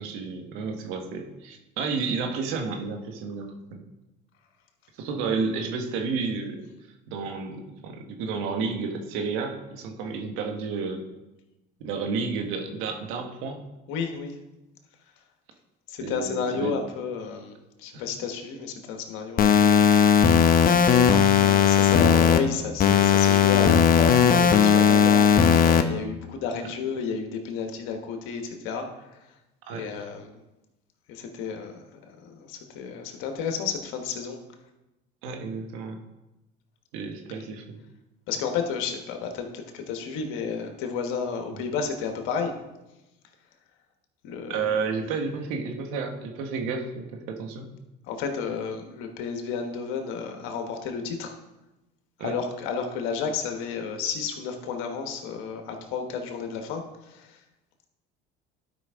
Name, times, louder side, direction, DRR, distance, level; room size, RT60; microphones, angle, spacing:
voice 1, 0.0-3.8 5.0-6.7 7.1-11.0 11.8-13.6 16.0-16.7 17.9-18.0 26.6-26.7 29.7-29.9 35.2-36.0 36.9-37.8 41.5-41.6 44.5-47.7 52.2-52.4, right 4 dB, 75° right, 5 dB, 1.3 m, -31 dB
voice 2, 13.9-14.4 15.9-19.9 21.4-29.2 29.7-30.3 31.1-34.4 38.3-42.5 44.2-44.7 48.1-51.3 52.2-57.4, left 6 dB, 75° left, 5 dB, 1.3 m, -32 dB
sound 1, 19.4-22.4 22.8-25.8, left 7 dB, 45° left, 0.8 m, -17 dB
12.0 x 5.2 x 3.6 m, 0.99 s
supercardioid pair, 85°, 21 cm